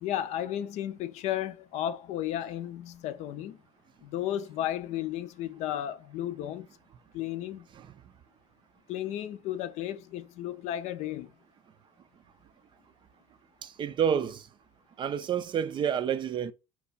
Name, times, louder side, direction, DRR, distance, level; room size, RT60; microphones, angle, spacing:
voice 1, 0.0-3.6 4.0-6.7 7.1-7.7 8.9-11.3, left 12 dB, 60° left, 0.5 m, -33 dB
voice 2, 13.6-14.5 15.0-16.5, right 8 dB, 40° right, 0.4 m, -29 dB
4.4 x 2.3 x 3.9 m
supercardioid pair, 90°, 13 cm